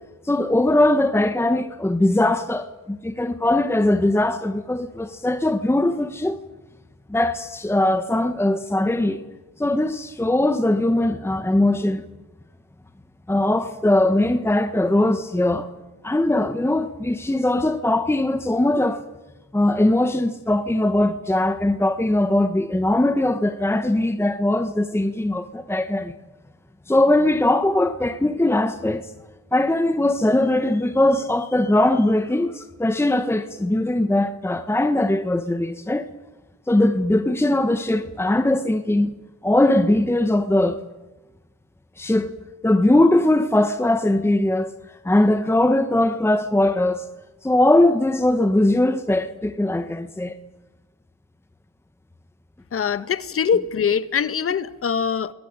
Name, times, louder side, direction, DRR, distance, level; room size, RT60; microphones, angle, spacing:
voice 1, 0.2-6.4 7.1-9.2 9.6-12.0 13.3-15.7 16.0-19.0 19.5-26.1 26.9-29.1 29.5-36.1 36.7-39.1 39.4-40.8 42.0-42.3 42.6-47.0 47.4-50.3, left 1 dB, 10° left, 1.4 m, -20 dB
voice 2, 52.7-55.3, left 7 dB, 45° left, 1.6 m, -23 dB
28.5 x 21.5 x 9.7 m
cardioid pair, 90°, 30 cm